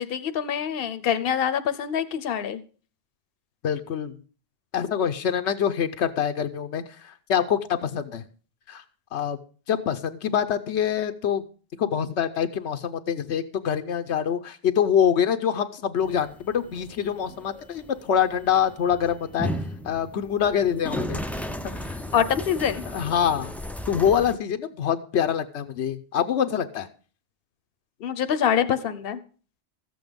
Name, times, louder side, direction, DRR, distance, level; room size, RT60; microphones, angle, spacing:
voice 1, 0.0-2.6 22.1-22.8 28.0-29.2, left 8 dB, 60° left, 12 dB, 1.0 m, -25 dB
voice 2, 3.6-4.2 4.7-8.2 8.7-8.8 9.1-9.4 9.7-11.4 11.8-19.5 19.8-21.2 21.7-22.0 22.9-23.5 23.9-26.9, left 8 dB, 80° left, 8 dB, 1.0 m, -25 dB
sound 1, 16.0-24.3, equal, ahead, 0.4 m, -35 dB
14.0 x 7.9 x 5.2 m, 0.39 s
omnidirectional pair, 1.1 m